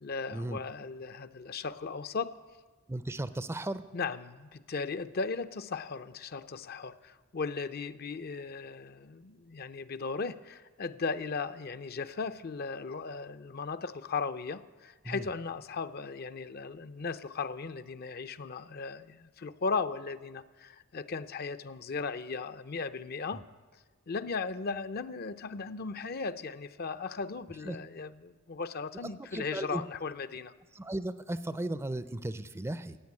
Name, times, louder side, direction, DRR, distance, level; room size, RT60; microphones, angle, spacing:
voice 1, 0.0-2.3 3.9-23.4 24.1-30.5, left 4 dB, 50° left, 0.6 m, -37 dB
voice 2, 2.9-3.8 15.0-15.3 23.3-23.4 27.6-27.8 29.0-29.8 30.7-33.0, right 1 dB, 10° right, 0.5 m, -36 dB
15.5 x 9.0 x 9.7 m
head